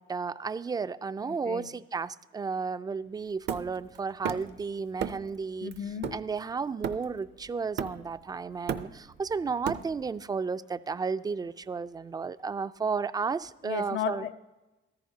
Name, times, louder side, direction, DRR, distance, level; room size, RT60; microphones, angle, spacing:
voice 1, 0.0-5.7 6.1-14.2, right 5 dB, 20° right, 0.3 m, -33 dB
voice 2, 1.3-1.7 5.6-6.2 13.6-14.3, left 10 dB, 80° left, 0.7 m, -34 dB
Hammer, 3.5-4.6 5.0-5.3 5.7-7.3 7.8-8.2 8.5-10.2, right 8 dB, 60° right, 0.6 m, -35 dB
14.5 x 14.0 x 2.8 m
cardioid pair, 90°, 20 cm